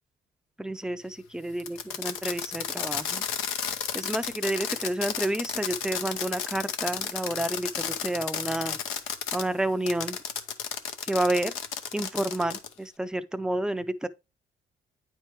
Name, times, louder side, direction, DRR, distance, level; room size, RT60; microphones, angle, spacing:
voice 1, 0.6-3.2 3.9-8.8 9.3-10.2 11.1-11.5 11.9-14.1, right 1 dB, 5° right, 0.5 m, -30 dB
Fireworks, 1.6-9.4 9.9-12.7, left 8 dB, 90° left, 0.7 m, -33 dB
8.9 x 4.6 x 3.0 m
cardioid pair, 90°, 20 cm